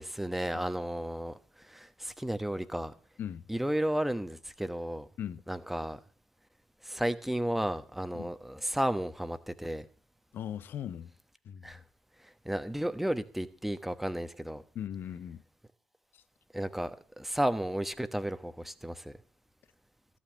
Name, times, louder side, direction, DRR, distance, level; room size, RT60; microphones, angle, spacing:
voice 1, 0.0-1.4 1.7-2.9 3.5-5.1 5.5-6.0 6.8-9.8 11.6-11.8 12.4-14.6 16.5-19.1, right 1 dB, 5° right, 1.1 m, -33 dB
voice 2, 10.3-11.1 11.4-11.7 14.7-15.4 16.1-16.2, left 9 dB, 55° left, 0.8 m, -39 dB
14.0 x 6.2 x 8.1 m
hypercardioid pair, 50°, 4 cm